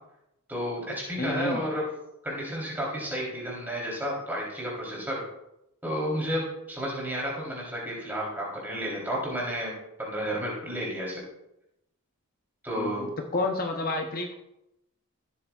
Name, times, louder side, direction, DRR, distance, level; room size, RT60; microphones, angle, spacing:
voice 1, 0.5-1.9 2.2-5.2 5.8-11.2 12.6-13.1, equal, 10° right, -4 dB, 3.4 m, -32 dB
voice 2, 1.2-1.6 12.8-14.3, left 2 dB, 40° left, 3 dB, 0.7 m, -30 dB
15.5 x 8.5 x 2.4 m, 0.86 s
head